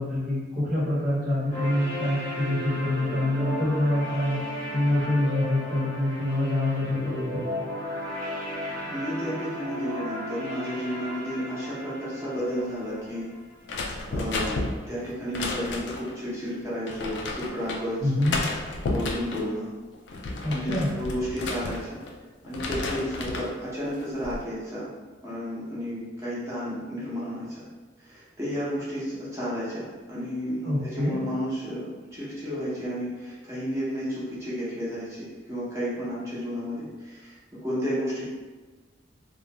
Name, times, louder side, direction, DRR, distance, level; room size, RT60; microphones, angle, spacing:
voice 1, 0.0-4.4 4.7-7.5 18.0-18.4 20.4-20.9 30.6-31.1, left 1 dB, 45° right, -7 dB, 0.9 m, -26 dB
sound 1, 1.5-13.5, equal, 5° left, 0.9 m, -35 dB
voice 2, 8.9-13.3 14.1-18.2 18.9-19.7 20.5-22.0 22.4-24.9 25.2-27.7 28.0-37.4 37.6-38.3, equal, 15° right, -10 dB, 0.7 m, -32 dB
sound 2, 13.7-16.2 16.9-17.8 18.2-19.5 19.9-22.1 22.5-23.5 24.0-24.4, left 2 dB, 70° left, 0.3 m, -32 dB
2.4 x 2.1 x 2.9 m, 1.3 s
head